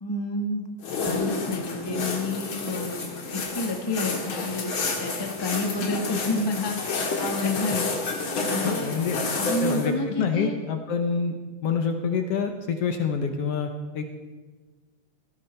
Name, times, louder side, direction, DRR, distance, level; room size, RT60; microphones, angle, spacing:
voice 1, 0.0-0.6 1.0-10.6, left 2 dB, 20° left, 3 dB, 0.6 m, -30 dB
sound 1, 0.8-9.9, left 3 dB, 45° left, 2.4 m, -30 dB
voice 2, 8.6-9.2 9.6-11.4 11.6-14.0, left 6 dB, 60° left, 6 dB, 1.7 m, -27 dB
18.0 x 16.0 x 4.5 m, 1.3 s
omnidirectional pair, 3.6 m